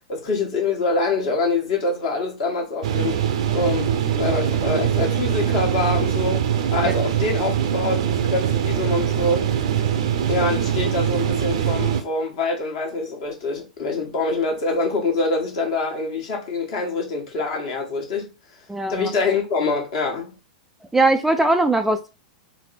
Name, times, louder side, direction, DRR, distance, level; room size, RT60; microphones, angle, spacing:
voice 1, 0.1-3.2 3.5-9.5 10.3-18.2 18.9-20.3, left 3 dB, 50° left, 1.3 m, -25 dB
sound 1, 2.8-12.0, right 9 dB, 60° right, 0.6 m, -22 dB
voice 2, 18.7-19.1 20.9-22.1, right 2 dB, 5° right, 0.3 m, -20 dB
4.1 x 2.1 x 4.1 m
figure-of-eight pair, 100°, 4 cm